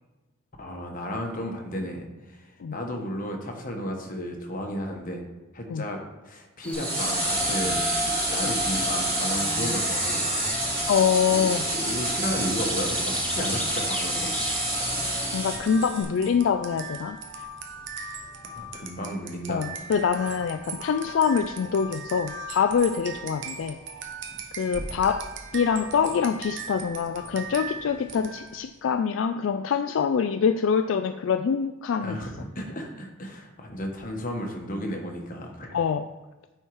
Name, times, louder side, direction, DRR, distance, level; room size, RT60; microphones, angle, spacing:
voice 1, 0.6-5.2 5.5-10.3 11.3-14.3 18.5-19.7 32.0-35.8, equal, 40° left, 2 dB, 1.3 m, -33 dB
sound 1, 6.6-15.4, left 1 dB, 5° left, 0.7 m, -37 dB
sound 2, 6.7-16.0, right 1 dB, 30° right, 2.5 m, -27 dB
voice 2, 10.9-11.6 15.3-17.2 19.5-23.8 24.6-25.2 25.5-32.2 35.7-36.1, left 6 dB, 70° left, 9 dB, 0.3 m, -25 dB
sound 3, 14.2-28.7, right 3 dB, 65° right, 1.0 m, -39 dB
8.9 x 4.5 x 4.8 m, 1.1 s
head